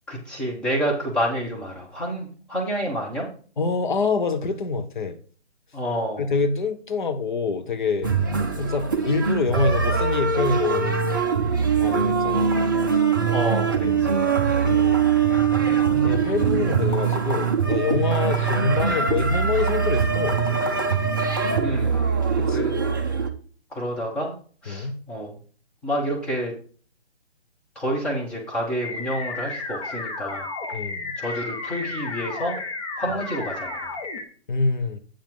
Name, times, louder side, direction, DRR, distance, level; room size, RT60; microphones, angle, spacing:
voice 1, 0.1-3.3 5.7-6.3 13.3-14.4 21.6-22.1 22.5-22.8 23.0-23.1 23.7-24.3 24.6-25.4 25.8-26.5 27.7-30.5 31.2-32.6 33.0-34.0, equal, 5° left, 1.0 m, -29 dB
voice 2, 3.6-5.2 6.2-8.1 8.6-11.2 11.8-12.6 14.6-15.1 16.0-21.0 22.4-22.7 24.7-25.0 30.7-31.1 34.5-35.0, left 4 dB, 45° left, 0.9 m, -26 dB
sound 1, 8.0-23.3, right 6 dB, 20° right, 0.5 m, -22 dB
sound 2, 28.8-34.2, left 3 dB, 30° left, 1.6 m, -32 dB
8.8 x 7.2 x 3.7 m
figure-of-eight pair, 145°, 34 cm